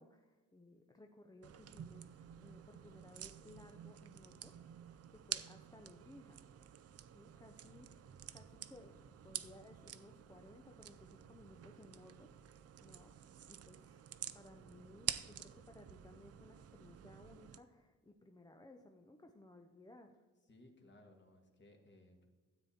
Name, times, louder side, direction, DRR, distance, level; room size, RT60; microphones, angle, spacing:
voice 1, 0.0-6.4 7.1-12.3 12.8-13.1 13.5-20.3, left 1 dB, 15° left, 3 dB, 0.5 m, -60 dB
sound 1, 1.4-17.6, right 9 dB, 50° right, 0.5 m, -49 dB
voice 2, 20.5-22.3, left 1 dB, 35° left, 3 dB, 1.7 m, -62 dB
13.0 x 8.5 x 4.3 m, 1.4 s
wide cardioid pair, 165°, 31 cm